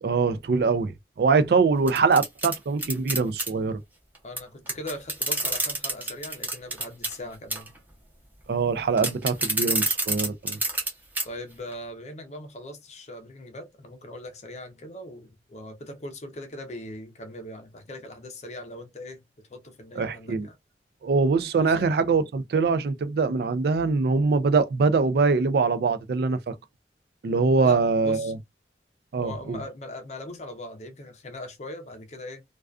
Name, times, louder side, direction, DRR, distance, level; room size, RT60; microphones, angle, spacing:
voice 1, 0.0-3.8 8.5-10.6 20.0-20.5 21.0-26.5 27.2-28.4 29.1-29.6, right 4 dB, 60° right, 0.3 m, -23 dB
sound 1, 1.9-3.5 4.4-4.5 4.7-7.2 7.5-7.8 9.0-10.9 11.2-11.3 11.7-11.8, right 2 dB, 10° right, 0.7 m, -27 dB
voice 2, 4.2-7.7 11.2-19.2 19.5-20.6 21.6-21.9 27.6-28.3 29.2-32.4, left 1 dB, 40° left, 0.5 m, -40 dB
2.3 x 2.3 x 2.3 m
head